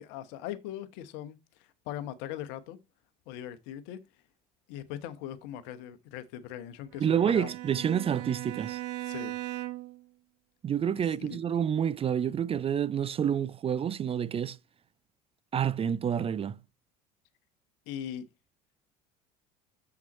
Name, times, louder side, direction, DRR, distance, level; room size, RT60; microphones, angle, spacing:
voice 1, 0.0-1.4 1.9-2.8 3.3-4.0 4.7-7.5 9.0-9.3 11.0-11.4 17.9-18.2, left 11 dB, 60° left, 1.1 m, -40 dB
Bowed string instrument, 6.9-10.0, right 17 dB, 60° right, 0.9 m, -38 dB
voice 2, 7.0-8.8 10.6-14.6 15.5-16.6, right 8 dB, 30° right, 0.5 m, -28 dB
7.2 x 6.0 x 4.2 m
hypercardioid pair, 65°, 20 cm